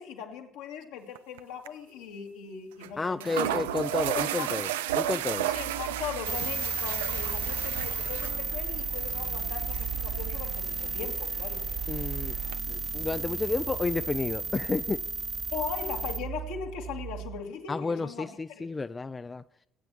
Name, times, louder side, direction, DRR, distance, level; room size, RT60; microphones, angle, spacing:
voice 1, 0.0-3.6 4.1-4.5 5.5-11.6 15.5-18.7, left 7 dB, 75° left, 2 dB, 2.0 m, -39 dB
sound 1, 1.2-1.4 1.7-1.8 2.8-2.9 3.2-12.6, right 12 dB, 80° right, 0.4 m, -34 dB
voice 2, 3.0-4.7 5.0-5.5 11.9-12.4 12.7-15.0 17.7-19.4, left 3 dB, 25° left, 12 dB, 0.5 m, -31 dB
sound 2, 5.5-17.4, right 11 dB, 60° right, 1.7 m, -42 dB
sound 3, 6.3-16.2, right 3 dB, 25° right, 1.1 m, -33 dB
19.0 x 9.0 x 4.6 m, 0.72 s
hypercardioid pair, 55°, 0 cm